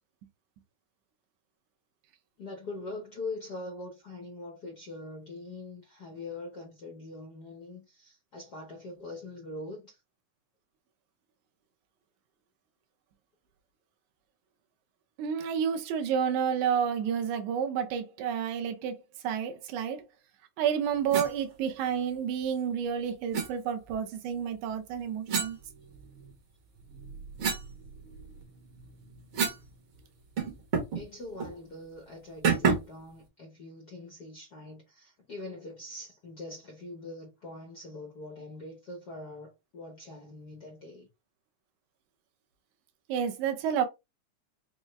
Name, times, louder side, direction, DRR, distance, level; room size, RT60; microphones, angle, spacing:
voice 1, 2.4-10.0 30.9-41.1, left 2 dB, 90° left, 0.8 m, -43 dB
voice 2, 15.2-20.1 20.6-25.6 43.1-43.9, right 8 dB, 75° right, 2.0 m, -30 dB
sound 1, 21.1-21.3 23.3-23.5 25.3-26.3 26.8-29.7 30.0-30.1 30.4-31.0 31.4-31.6 32.4-33.0, right 5 dB, 55° right, 1.5 m, -31 dB
5.4 x 2.3 x 3.2 m
omnidirectional pair, 3.7 m